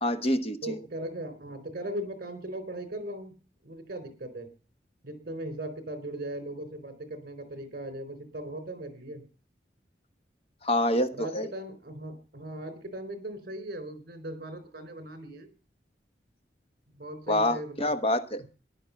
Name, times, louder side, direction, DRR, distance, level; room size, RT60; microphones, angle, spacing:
voice 1, 0.0-0.8 10.6-11.5 17.3-18.4, left 1 dB, 35° left, 9 dB, 1.0 m, -26 dB
voice 2, 0.6-3.3 3.6-4.5 5.0-9.2 11.1-15.5 17.0-18.0, right 1 dB, 55° right, 11 dB, 4.1 m, -38 dB
15.5 x 11.0 x 7.0 m, 0.38 s
head